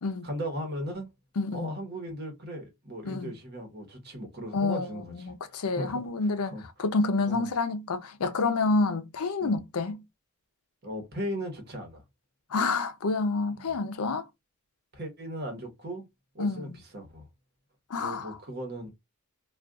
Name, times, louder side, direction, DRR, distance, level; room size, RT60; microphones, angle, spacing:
voice 1, 0.2-1.1 1.5-6.0 6.4-6.6 7.3-7.5 9.4-9.6 10.8-12.0 13.5-13.7 14.9-16.1 16.3-17.3 18.0-18.9, equal, 50° right, 1.0 m, -37 dB
voice 2, 1.4-1.7 3.0-3.3 4.5-6.5 6.8-10.0 12.5-14.3 16.4-16.8 17.9-18.4, left 3 dB, 90° left, 0.5 m, -28 dB
2.4 x 2.4 x 3.5 m
head